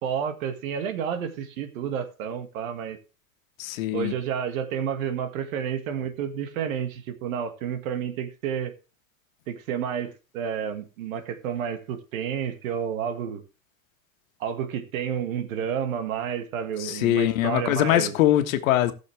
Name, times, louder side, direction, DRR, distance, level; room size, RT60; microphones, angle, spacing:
voice 1, 0.0-3.0 3.9-8.7 9.5-13.4 14.4-18.1, right 8 dB, 75° right, 2.0 m, -30 dB
voice 2, 3.6-4.1 16.8-18.9, left 13 dB, 70° left, 1.5 m, -22 dB
18.5 x 6.5 x 3.4 m
supercardioid pair, 150°, 42 cm